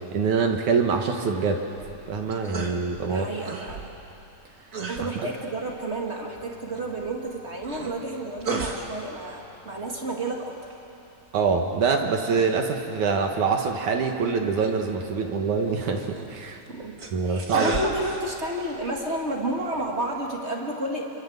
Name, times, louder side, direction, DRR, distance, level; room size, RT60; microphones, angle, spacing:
voice 1, 0.1-1.6 2.1-3.3 11.3-16.6 17.1-17.7, right 5 dB, 60° right, 3 dB, 2.4 m, -24 dB
sound 1, 1.8-20.4, right 3 dB, 75° right, 0.7 m, -39 dB
voice 2, 3.1-3.9 4.9-10.8 16.7-21.0, right 1 dB, 30° right, 0 dB, 1.1 m, -31 dB
27.5 x 25.0 x 8.1 m, 2.9 s
omnidirectional pair, 4.8 m